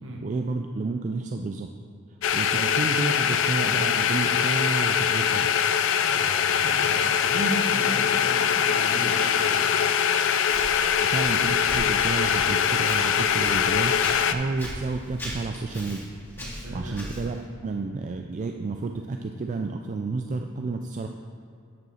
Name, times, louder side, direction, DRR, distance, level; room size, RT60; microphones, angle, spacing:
voice 1, 0.2-1.7 2.3-5.5 11.0-13.9 14.3-16.1 16.7-17.4 17.6-21.1, right 3 dB, 35° right, 4 dB, 0.3 m, -30 dB
sound 1, 2.2-14.3, left 8 dB, 60° left, 0.4 m, -23 dB
voice 2, 6.0-9.6 16.4-17.1, right 1 dB, 60° right, 0 dB, 1.4 m, -35 dB
Walk footsteps, 10.4-17.4, equal, 10° left, 2.1 m, -39 dB
9.3 x 5.2 x 5.6 m, 2.4 s
head